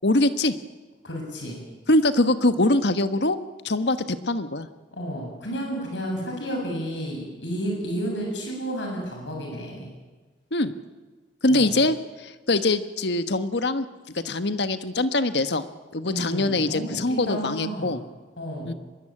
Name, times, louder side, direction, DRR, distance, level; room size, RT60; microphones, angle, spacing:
voice 1, 0.0-0.6 1.9-3.4 3.6-4.7 10.5-10.7 11.4-13.8 14.2-15.6 15.9-18.0 18.6-18.7, left 2 dB, 70° left, 11 dB, 1.4 m, -23 dB
voice 2, 1.0-1.6 4.9-9.9 11.5-11.7 16.0-17.9 18.4-18.7, equal, 90° left, 0 dB, 7.6 m, -31 dB
23.5 x 21.5 x 8.8 m, 1.3 s
head